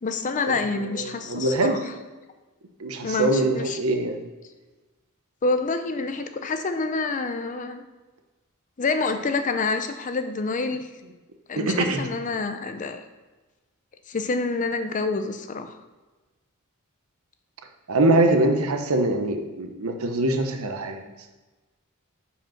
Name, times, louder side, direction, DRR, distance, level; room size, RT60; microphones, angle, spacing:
voice 1, 0.0-1.9 3.0-3.8 5.4-7.8 8.8-10.9 11.5-13.0 14.1-15.7, left 3 dB, 35° left, 8 dB, 0.5 m, -27 dB
voice 2, 1.0-1.8 2.8-4.2 11.7-12.0 17.9-21.0, right 2 dB, 75° right, 5 dB, 0.9 m, -23 dB
5.1 x 5.0 x 5.8 m, 1.2 s
head